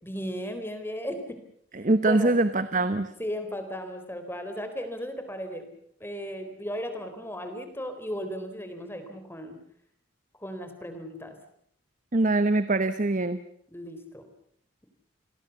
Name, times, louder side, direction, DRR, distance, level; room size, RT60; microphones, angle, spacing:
voice 1, 0.0-1.4 2.1-2.3 3.2-5.7 6.0-9.6 10.4-11.4 13.7-14.3, equal, 10° left, 8 dB, 4.0 m, -35 dB
voice 2, 1.7-3.1 12.1-13.4, right 2 dB, 40° right, 12 dB, 1.0 m, -23 dB
29.0 x 21.5 x 7.1 m, 0.71 s
head